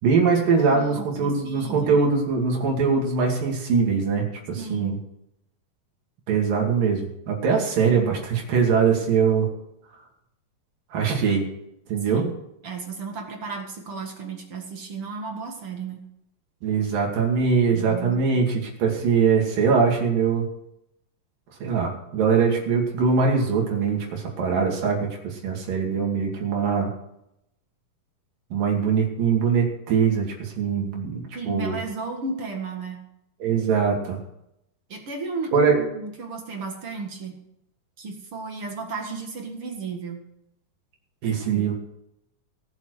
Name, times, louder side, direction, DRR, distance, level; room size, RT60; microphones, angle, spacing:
voice 1, 0.0-5.0 6.3-9.5 10.9-11.5 11.9-12.3 16.6-20.5 21.6-26.9 28.5-31.8 33.4-34.2 35.5-35.8 41.2-41.7, right 5 dB, 90° right, 0 dB, 4.2 m, -22 dB
voice 2, 0.5-2.0 4.6-4.9 12.1-12.4 12.6-16.0 17.7-18.2 31.3-33.0 34.9-37.4 38.0-40.2 41.5-41.7, right 4 dB, 45° right, 2 dB, 2.4 m, -34 dB
18.5 x 7.4 x 6.5 m, 0.81 s
omnidirectional pair, 3.8 m